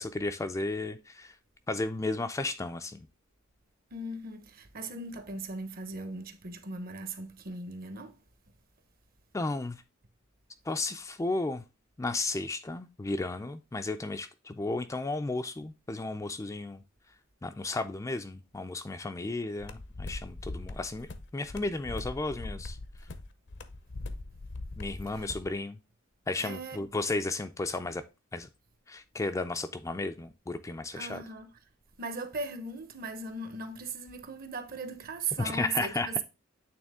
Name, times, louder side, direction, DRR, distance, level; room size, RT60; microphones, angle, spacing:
voice 1, 0.0-1.4 1.7-3.1 9.3-9.8 10.7-11.6 12.0-16.8 17.4-22.8 24.8-25.8 26.3-28.0 28.3-28.5 28.9-31.2 35.4-36.1, left 2 dB, 15° left, 0.3 m, -34 dB
voice 2, 3.9-8.2 25.1-25.3 26.4-26.8 30.9-31.5 32.0-36.2, right 3 dB, 50° right, 0.9 m, -38 dB
sound 1, 19.6-25.5, left 2 dB, 60° left, 0.7 m, -41 dB
8.7 x 3.5 x 3.5 m
head